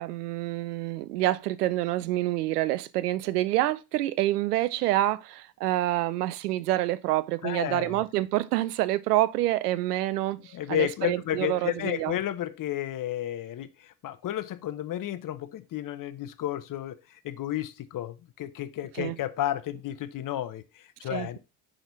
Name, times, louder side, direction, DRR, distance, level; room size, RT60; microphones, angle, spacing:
voice 1, 0.0-12.1 19.0-19.2 21.1-21.4, right 15 dB, 85° right, 0.6 m, -27 dB
voice 2, 7.4-8.0 10.5-17.0 17.2-21.4, left 12 dB, 45° left, 0.8 m, -32 dB
6.0 x 4.0 x 5.1 m
hypercardioid pair, 55°, 46 cm